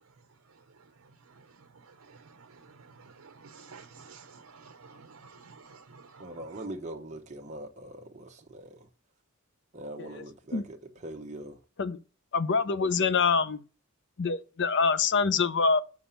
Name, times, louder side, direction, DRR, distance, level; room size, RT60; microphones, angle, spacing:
voice 1, 1.3-6.4, right 4 dB, 65° right, 0.7 m, -52 dB
voice 2, 6.2-8.9 9.7-11.6, right 1 dB, 30° right, 0.8 m, -42 dB
voice 3, 12.3-13.6 14.2-15.8, left 5 dB, 55° left, 0.6 m, -25 dB
7.0 x 4.9 x 5.6 m
head